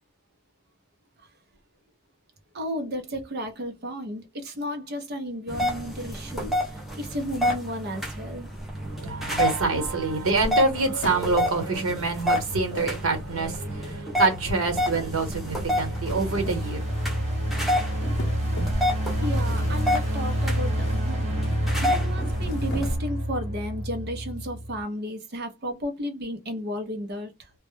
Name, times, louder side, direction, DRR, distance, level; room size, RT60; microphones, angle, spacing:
voice 1, 2.5-8.5 18.8-18.9 19.2-27.5, equal, 50° right, 0.5 m, -33 dB
sound 1, 5.5-22.9, left 1 dB, ahead, 0.6 m, -30 dB
voice 2, 9.0-16.8, right 3 dB, 75° right, 1.0 m, -26 dB
sound 2, 11.0-11.7 12.7-13.7 14.6-15.3 15.9-16.7 17.1-17.3 18.2-18.9 19.3-19.9 20.7-21.1 21.5-21.8 22.3-23.2, equal, 50° left, 0.6 m, -38 dB
sound 3, 14.7-24.8, equal, 30° right, 1.0 m, -28 dB
2.1 x 2.0 x 3.1 m
head